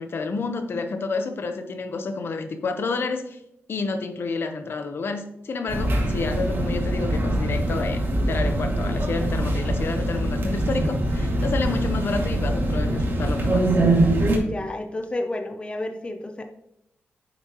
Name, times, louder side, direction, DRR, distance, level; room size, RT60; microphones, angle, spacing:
voice 1, 0.0-3.4 3.7-13.6, left 4 dB, 60° left, 7 dB, 1.0 m, -29 dB
sound 1, 5.7-14.4, right 1 dB, 55° right, 2.3 m, -23 dB
voice 2, 14.5-16.4, left 1 dB, 25° left, 5 dB, 0.7 m, -31 dB
9.4 x 7.1 x 3.1 m, 0.80 s
wide cardioid pair, 105°, 4 cm